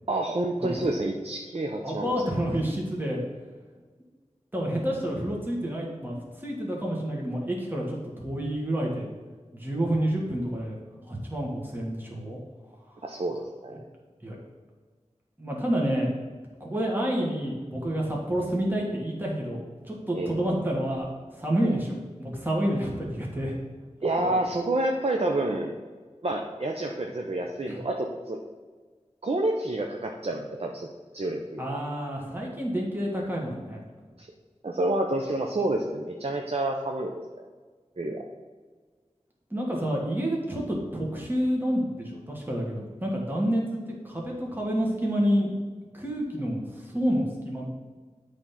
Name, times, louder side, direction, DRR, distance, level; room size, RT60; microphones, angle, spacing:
voice 1, 0.1-2.4 13.0-13.8 20.1-20.3 21.6-21.8 24.0-25.7 26.2-28.4 29.2-30.9 31.1-31.8 34.2-34.3 34.6-37.2 38.0-38.2, right 2 dB, 55° right, 2 dB, 0.6 m, -29 dB
voice 2, 1.8-3.2 4.5-9.1 9.5-10.8 11.1-12.4 12.9-13.0 14.2-14.4 15.4-16.1 16.6-19.6 19.8-21.1 21.3-23.5 27.6-27.8 31.6-33.8 39.5-45.5 45.9-47.6, equal, 15° right, -3 dB, 1.5 m, -29 dB
8.5 x 3.5 x 5.7 m, 1.4 s
wide cardioid pair, 50°, 12 cm